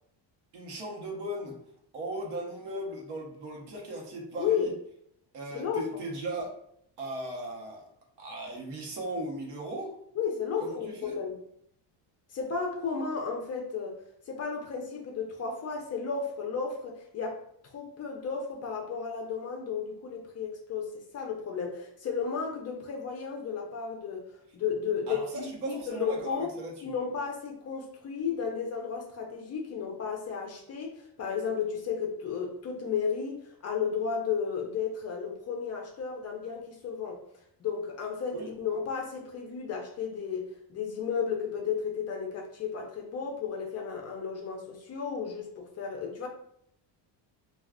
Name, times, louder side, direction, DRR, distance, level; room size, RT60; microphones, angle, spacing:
voice 1, 0.5-1.6 1.9-4.7 5.3-6.5 7.0-7.9 8.2-10.0 10.6-11.2 25.1-26.9 38.3-38.5, right 1 dB, 65° right, -1 dB, 0.9 m, -37 dB
voice 2, 4.4-4.7 5.5-5.8 10.2-11.4 12.3-14.0 14.3-17.4 17.7-24.2 24.5-26.5 26.8-37.2 37.6-46.3, left 6 dB, 35° left, 1 dB, 0.4 m, -33 dB
2.3 x 2.3 x 3.5 m, 0.71 s
cardioid pair, 160°, 45 cm